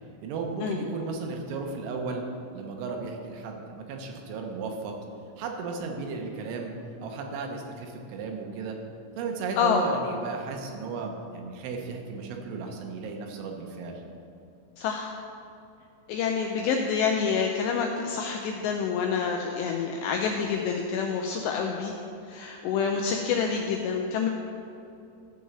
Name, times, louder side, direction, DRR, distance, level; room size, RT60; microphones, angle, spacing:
voice 1, 0.2-2.2 2.5-4.9 5.4-6.7 7.0-8.8 9.2-14.0, right 4 dB, 80° right, 2 dB, 3.4 m, -34 dB
voice 2, 14.8-15.2 16.1-21.9 22.3-24.3, left 6 dB, 90° left, 2 dB, 2.4 m, -27 dB
14.0 x 4.7 x 6.8 m, 2.6 s
omnidirectional pair, 5.6 m